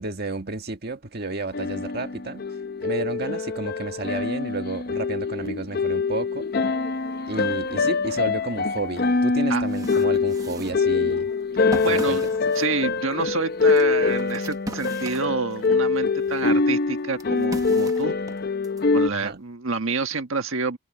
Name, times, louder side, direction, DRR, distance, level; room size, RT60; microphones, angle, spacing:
voice 1, 0.0-2.4 2.8-6.5 7.3-11.3 11.9-12.3 19.1-19.4, right 2 dB, 50° right, 1.7 m, -31 dB
sound 1, 1.5-19.1, left 4 dB, 50° left, 0.6 m, -24 dB
sound 2, 8.9-9.0 9.4-15.8 16.2-18.8, right 1 dB, 15° right, 1.0 m, -38 dB
voice 2, 11.8-12.2 12.5-18.1 18.9-20.8, right 4 dB, 75° right, 1.5 m, -28 dB
head